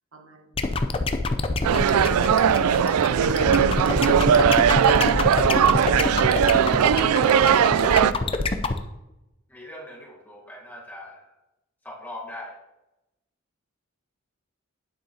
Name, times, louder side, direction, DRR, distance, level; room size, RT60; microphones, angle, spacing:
voice 1, 0.1-0.8 1.1-1.5 3.3-5.2, right 2 dB, 65° right, 2 dB, 1.2 m, -41 dB
sound 1, 0.6-8.8, left 3 dB, 25° left, 0.4 m, -25 dB
sound 2, 1.6-8.1, right 8 dB, 90° right, 0.3 m, -19 dB
voice 2, 5.6-6.0 6.6-8.8 9.5-11.3 11.8-12.5, left 1 dB, 10° left, -3 dB, 1.3 m, -41 dB
9.3 x 7.7 x 2.8 m, 0.94 s
head